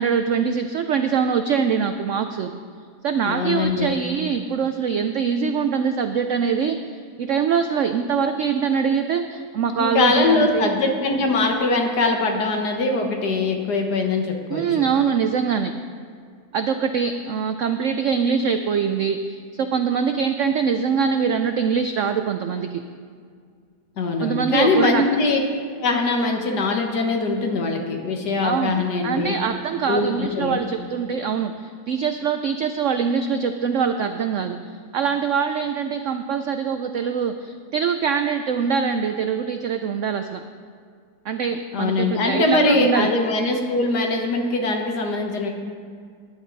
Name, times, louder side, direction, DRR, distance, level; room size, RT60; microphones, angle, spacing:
voice 1, 0.0-2.5 3.0-10.7 14.5-15.7 16.5-22.8 24.2-25.0 28.4-40.4 41.2-43.1, right 6 dB, 75° right, 8 dB, 0.7 m, -23 dB
voice 2, 3.2-4.0 9.8-14.9 24.0-25.4 25.8-29.3 29.9-30.6 41.7-45.5, left 3 dB, 70° left, 3 dB, 1.9 m, -22 dB
16.0 x 10.0 x 4.0 m, 2.1 s
omnidirectional pair, 1.8 m